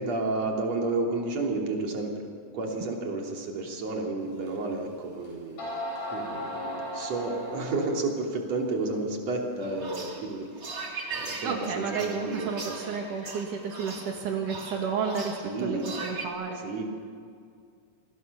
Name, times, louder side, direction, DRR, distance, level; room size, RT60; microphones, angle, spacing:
voice 1, 0.0-2.3 2.5-5.6 6.1-10.8 11.1-11.7 12.0-12.8 15.4-15.9 16.6-16.8, right 3 dB, 55° right, 0 dB, 4.3 m, -31 dB
sound 1, 4.5-4.6 5.2-5.3 5.6-8.0, equal, 80° left, 9.6 m, -36 dB
sound 2, 9.6-16.3, right 4 dB, 30° right, 3.1 m, -39 dB
voice 2, 11.4-16.6, right 5 dB, 80° right, 1 dB, 3.6 m, -31 dB
28.5 x 23.5 x 6.8 m, 2.3 s
omnidirectional pair, 3.6 m